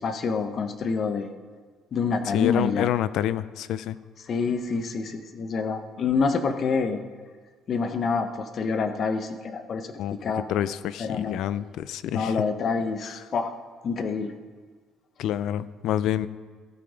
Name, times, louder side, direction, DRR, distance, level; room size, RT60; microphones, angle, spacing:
voice 1, 0.0-1.3 1.9-2.9 4.3-7.0 7.7-9.9 10.2-10.4 11.0-11.4 12.1-13.5 13.8-14.3, left 5 dB, 40° left, 8 dB, 0.7 m, -27 dB
voice 2, 2.3-4.0 10.0-10.2 10.5-12.4 13.0-13.2 15.2-16.3, left 11 dB, 65° left, 16 dB, 0.4 m, -28 dB
16.0 x 5.8 x 5.0 m, 1.5 s
cardioid pair, 155°, 0 cm